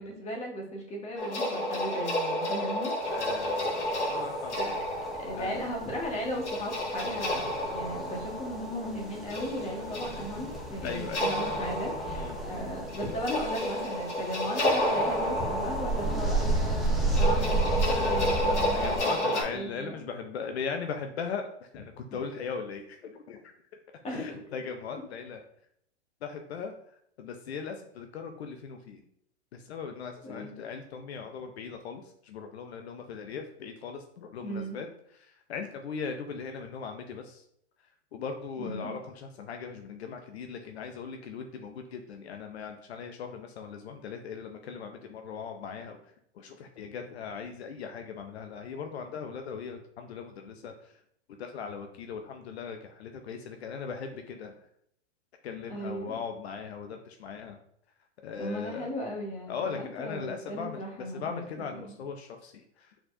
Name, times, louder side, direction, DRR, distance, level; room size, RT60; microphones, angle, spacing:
voice 1, 0.0-2.9 4.5-4.7 5.2-20.0 24.0-24.4 30.2-30.6 34.4-34.8 38.6-38.9 55.7-56.2 58.4-61.4 61.7-62.0, equal, 20° left, -1 dB, 1.5 m, -37 dB
sound 1, 1.2-19.4, left 1 dB, 85° left, 1.8 m, -31 dB
sound 2, 3.0-19.0, right 2 dB, ahead, 0.9 m, -33 dB
voice 2, 3.1-4.8 5.3-5.7 10.8-11.5 12.2-12.6 17.3-23.5 24.1-25.4 26.2-26.7 27.2-29.0 29.5-34.9 35.1-37.4 38.1-51.0 51.4-54.5 55.4-57.6 58.2-58.9 59.5-62.9, left 6 dB, 65° left, 5 dB, 0.7 m, -39 dB
4.4 x 4.3 x 2.6 m, 0.69 s
hypercardioid pair, 110°, 34 cm